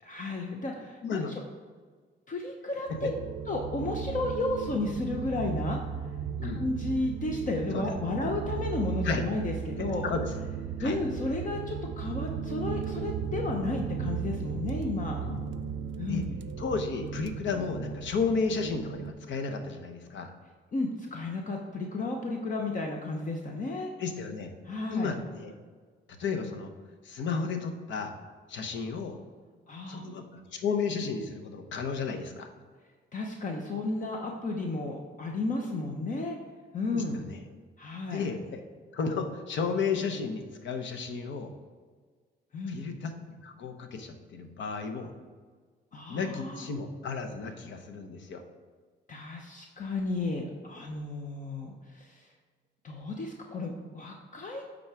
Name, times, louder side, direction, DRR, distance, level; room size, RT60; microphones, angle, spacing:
voice 1, 0.0-1.4 2.3-3.1 3.5-5.8 6.6-10.1 10.8-15.2 16.0-16.4 20.7-23.9 24.7-25.1 29.7-30.0 33.1-36.4 36.7-37.2 37.8-38.2 42.5-42.8 45.9-46.7 49.1-52.3 52.8-54.6, left 2 dB, 40° left, 1 dB, 0.8 m, -33 dB
voice 2, 1.0-1.3 2.9-3.1 6.4-6.6 7.7-7.9 9.0-9.3 10.0-10.3 10.8-11.0 15.2-15.4 16.1-16.2 16.6-20.3 24.0-24.5 24.9-25.6 26.2-26.7 27.0-28.1 28.5-29.2 29.9-32.5 36.9-37.4 38.1-38.6 38.9-41.5 42.7-43.1 43.4-45.1 46.1-48.4, left 5 dB, 70° left, 6 dB, 0.9 m, -33 dB
sound 1, 2.9-19.1, right 7 dB, 70° right, 0.5 m, -36 dB
8.9 x 4.0 x 4.7 m, 1.5 s
cardioid pair, 90°, 20 cm